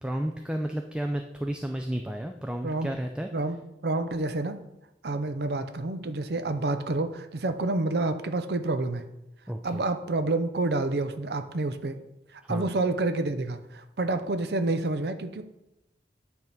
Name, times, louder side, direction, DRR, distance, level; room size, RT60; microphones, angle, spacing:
voice 1, 0.0-3.3 9.5-9.8 12.4-12.7, right 1 dB, 5° right, 4 dB, 0.4 m, -32 dB
voice 2, 3.3-4.6 5.0-9.0 9.6-12.0 12.5-15.4, right 2 dB, 65° right, 9 dB, 0.6 m, -28 dB
9.4 x 3.6 x 5.8 m, 0.89 s
head